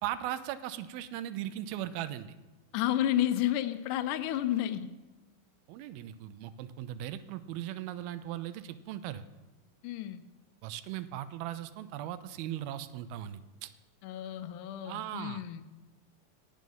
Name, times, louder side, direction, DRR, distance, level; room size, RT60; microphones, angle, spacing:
voice 1, 0.0-2.4 5.7-9.2 10.6-13.7 14.8-15.4, right 12 dB, 85° right, 14 dB, 2.4 m, -38 dB
voice 2, 2.7-4.9 9.8-10.2 14.0-15.6, left 12 dB, 90° left, 10 dB, 1.8 m, -31 dB
18.5 x 6.4 x 5.3 m, 1.1 s
omnidirectional pair, 4.3 m